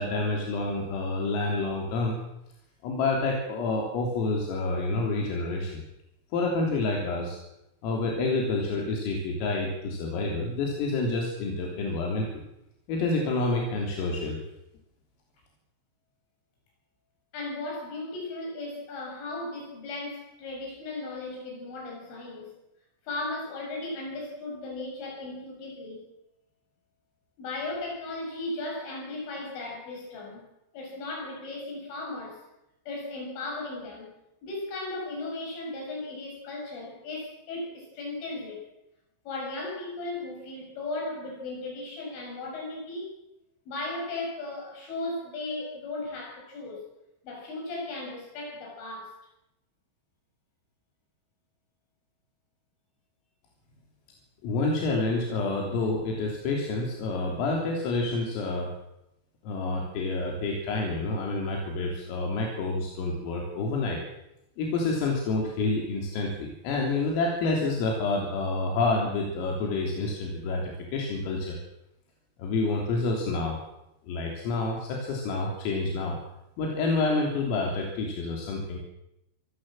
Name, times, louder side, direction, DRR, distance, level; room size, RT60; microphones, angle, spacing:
voice 1, 0.0-2.2 2.8-5.8 6.3-7.4 7.8-12.3 12.9-14.4 54.4-58.7 59.4-64.0 64.6-71.6 72.4-73.6 74.1-76.2 76.6-78.8, left 3 dB, 90° left, 0 dB, 6.0 m, -28 dB
voice 2, 17.3-22.6 23.0-26.1 27.4-30.5 30.7-32.4 32.9-34.1 34.4-38.7 39.2-43.1 43.7-46.9 47.2-49.2, left 2 dB, 70° left, 0 dB, 10.0 m, -36 dB
25.5 x 17.5 x 7.7 m, 0.88 s
omnidirectional pair, 5.8 m